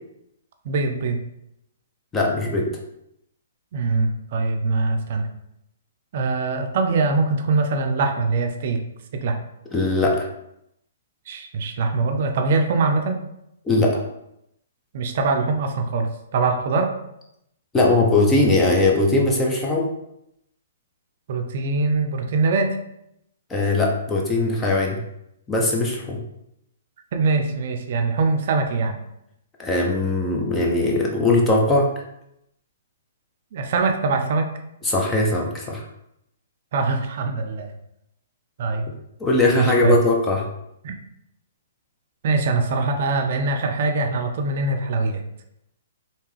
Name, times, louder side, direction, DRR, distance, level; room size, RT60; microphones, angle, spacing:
voice 1, 0.6-1.2 3.7-5.3 6.1-8.8 9.2-9.4 11.3-13.2 14.9-16.9 21.3-22.8 27.1-29.0 33.5-34.5 36.7-37.7 38.6-38.8 39.5-40.0 40.8-40.9 42.2-45.2, right 3 dB, 55° right, 5 dB, 0.5 m, -22 dB
voice 2, 2.1-2.7 9.7-10.3 13.7-14.0 17.7-19.9 23.5-25.0 25.5-26.2 29.6-31.9 34.8-35.8 39.2-40.4, left 2 dB, 15° left, -2 dB, 0.7 m, -20 dB
3.4 x 2.8 x 3.2 m, 0.81 s
hypercardioid pair, 135°, 0 cm